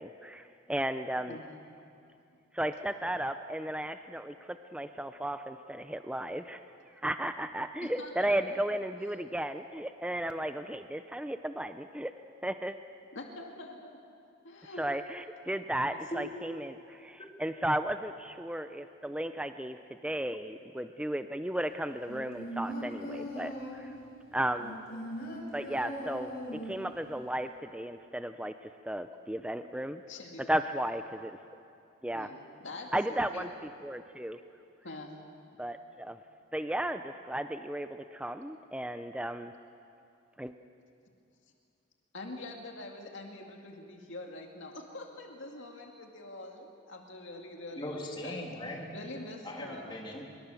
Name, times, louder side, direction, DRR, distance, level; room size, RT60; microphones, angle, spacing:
voice 1, 0.0-1.4 2.5-6.6 7.0-12.1 12.4-12.8 14.8-23.9 24.3-24.8 25.5-28.5 28.8-30.0 30.4-31.4 32.0-32.3 32.9-34.4 35.6-36.2 36.5-39.5 40.4-40.5, right 1 dB, 5° right, 9 dB, 0.5 m, -34 dB
voice 2, 1.3-1.6 7.8-8.3 13.1-14.0 14.4-14.9 15.9-16.3 30.1-30.5 32.1-33.5 34.8-35.2 42.1-48.5 48.9-50.0, left 2 dB, 65° left, 1 dB, 2.1 m, -45 dB
sound 1, 22.1-24.0 24.6-27.0 27.3-27.4, equal, 45° left, 4.8 m, -40 dB
voice 3, 47.8-48.9 49.4-50.2, left 1 dB, 25° left, -1 dB, 3.1 m, -40 dB
24.0 x 23.5 x 7.0 m, 2.5 s
head